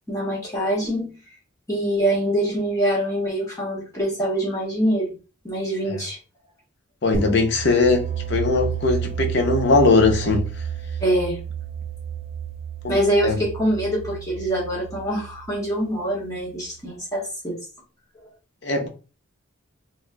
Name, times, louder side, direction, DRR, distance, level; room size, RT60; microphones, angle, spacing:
voice 1, 0.1-1.2 1.7-5.2 5.4-6.2 8.5-8.7 11.0-11.4 12.9-17.6, right 1 dB, 15° left, 1.2 m, -24 dB
voice 2, 7.0-10.5 12.8-13.0 13.2-13.4 18.6-18.9, left 3 dB, 55° left, 0.7 m, -20 dB
sound 1, 7.1-16.7, right 7 dB, 30° right, 0.5 m, -31 dB
4.2 x 2.0 x 2.2 m
head